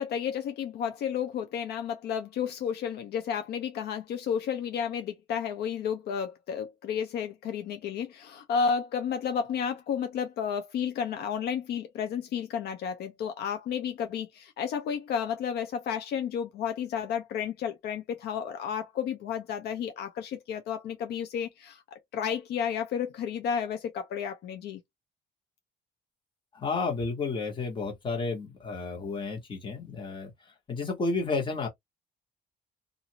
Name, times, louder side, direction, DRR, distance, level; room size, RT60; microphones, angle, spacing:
voice 1, 0.0-24.8, left 7 dB, 70° left, 0.6 m, -32 dB
voice 2, 26.5-31.7, left 4 dB, 30° left, 1.3 m, -32 dB
2.6 x 2.5 x 2.8 m
cardioid pair, 155°, 17 cm